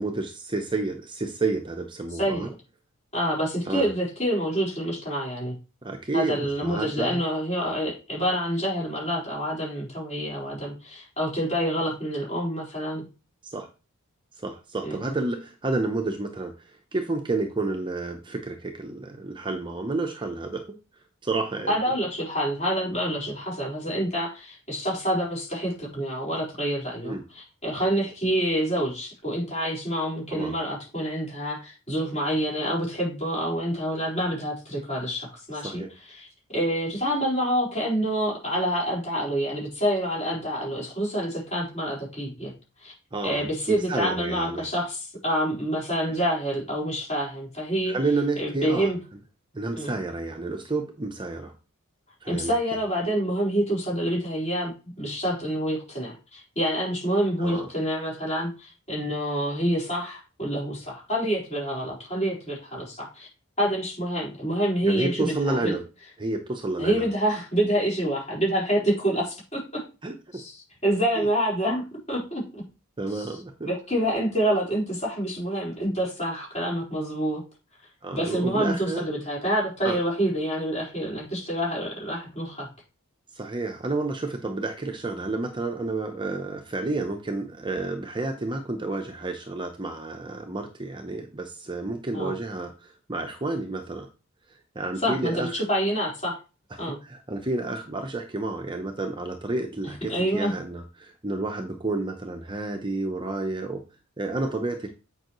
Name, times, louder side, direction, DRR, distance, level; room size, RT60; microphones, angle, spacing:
voice 1, 0.0-2.5 3.7-3.9 5.8-7.2 13.4-13.7 14.4-20.6 21.2-21.7 27.0-27.2 30.3-30.5 35.5-35.9 43.1-44.6 47.9-48.9 49.5-51.5 52.2-52.5 57.4-57.7 64.8-65.8 66.2-67.1 70.0-70.1 71.2-71.3 73.0-73.7 78.0-79.0 79.8-80.0 83.3-94.1 94.7-95.6 96.7-103.8 104.2-104.9, right 2 dB, 20° right, 4 dB, 0.8 m, -30 dB
voice 2, 2.1-2.5 3.1-5.5 6.1-13.0 14.8-15.1 21.7-35.8 36.1-36.3 36.5-42.5 42.8-42.9 43.2-48.0 48.4-49.0 49.8-49.9 52.3-54.7 55.0-63.3 63.6-65.7 66.8-69.8 70.3-72.6 73.1-73.4 73.6-77.4 78.1-82.7 92.1-92.3 95.0-96.4 96.8-97.0 99.8-100.5, equal, 30° left, -5 dB, 4.5 m, -27 dB
8.9 x 5.5 x 3.1 m, 0.32 s
head